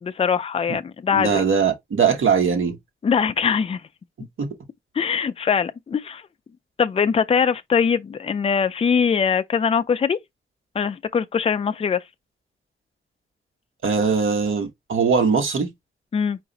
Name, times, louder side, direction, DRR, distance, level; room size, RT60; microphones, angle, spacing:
voice 1, 0.0-1.4 3.0-3.8 5.0-6.2 6.8-10.2 10.8-12.0 16.1-16.4, left 6 dB, 30° left, 0.4 m, -22 dB
voice 2, 1.1-2.8 4.4-4.5 13.8-15.7, right 6 dB, 85° right, 1.3 m, -21 dB
4.8 x 2.5 x 3.9 m
wide cardioid pair, 180°, 20 cm